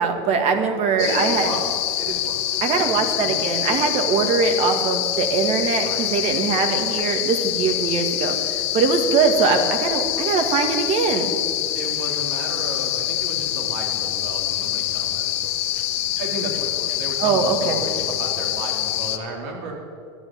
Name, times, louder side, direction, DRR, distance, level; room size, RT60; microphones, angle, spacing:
voice 1, 0.0-1.5 2.6-11.3 17.2-17.8, right 5 dB, 50° right, 5 dB, 2.1 m, -22 dB
voice 2, 0.9-1.6 2.0-2.4 2.7-3.5 5.7-6.1 11.7-15.5 16.2-19.7, right 2 dB, 70° right, 0 dB, 3.6 m, -33 dB
sound 1, 1.0-19.2, left 13 dB, 55° left, 1.1 m, -25 dB
12.5 x 9.4 x 8.8 m, 2.3 s
supercardioid pair, 115°, 14 cm